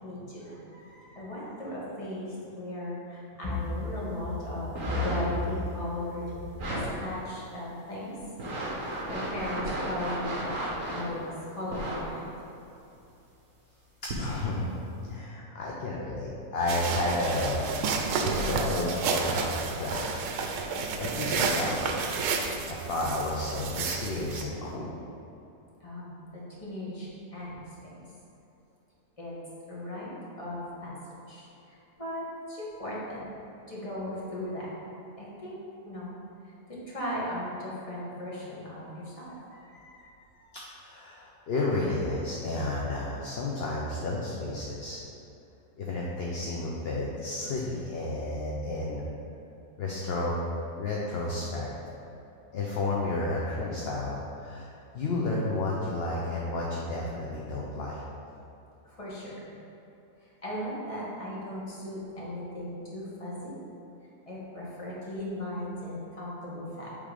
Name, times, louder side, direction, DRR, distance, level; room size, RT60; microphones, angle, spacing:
voice 1, 0.0-6.4 6.6-8.1 9.1-12.3 25.8-28.0 29.2-29.4 29.7-31.0 31.3-33.3 33.7-34.7 35.2-35.6 35.8-36.1 36.4-40.1 40.4-40.5 58.8-59.5 60.2-63.6 64.2-66.9, left 1 dB, 20° left, -7 dB, 1.6 m, -37 dB
sound 1, 4.6-5.5 6.5-6.9 7.5-7.6 8.2-11.1 11.7-12.0 13.0-13.1 14.0-14.4 15.0-15.1, right 1 dB, 60° right, 1.7 m, -34 dB
voice 2, 14.2-14.7 15.1-17.7 18.2-19.5 19.8-20.2 21.0-22.0 22.7-24.9 40.8-45.0 45.8-49.1 49.8-50.3 50.8-51.7 52.5-54.7 54.9-58.0, left 2 dB, 50° left, -4 dB, 0.8 m, -31 dB
sound 2, 16.7-24.4, right 4 dB, 85° right, 1.2 m, -31 dB
8.4 x 3.6 x 5.1 m, 2.9 s
omnidirectional pair, 1.6 m